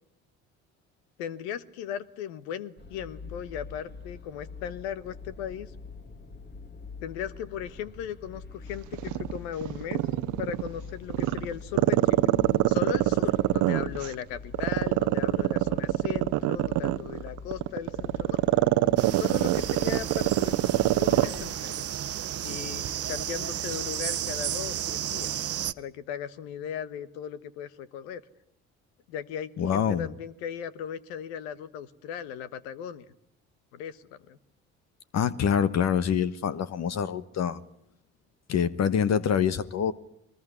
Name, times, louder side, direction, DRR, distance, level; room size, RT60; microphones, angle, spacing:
voice 1, 1.2-5.7 7.0-10.0 10.4-12.3 12.7-18.4 19.1-21.9 22.4-25.3 25.8-28.2 29.1-33.0 33.7-34.4, left 9 dB, 80° left, 1.4 m, -37 dB
sound 1, 2.8-21.5, left 4 dB, 35° left, 2.8 m, -45 dB
Growling, 8.9-10.7 11.1-14.1 14.5-21.4 21.7-21.8, right 17 dB, 70° right, 0.9 m, -24 dB
sound 2, 19.0-25.7, right 11 dB, 50° right, 1.0 m, -33 dB
voice 2, 29.6-30.1 35.1-37.6 38.5-39.9, left 8 dB, 55° left, 1.3 m, -25 dB
23.0 x 20.5 x 9.9 m
hypercardioid pair, 55°, 32 cm